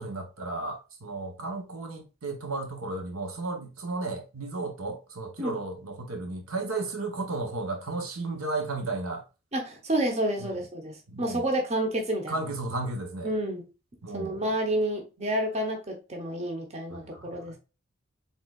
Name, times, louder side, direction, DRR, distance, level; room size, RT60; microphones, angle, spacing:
voice 1, 0.0-9.2 10.4-10.6 11.1-11.4 12.3-13.3 14.0-14.4 16.9-17.6, right 3 dB, 90° right, 1.0 m, -34 dB
voice 2, 9.5-12.4 13.2-13.7 14.1-17.6, right 1 dB, 30° right, 0.9 m, -29 dB
4.2 x 3.7 x 2.4 m
head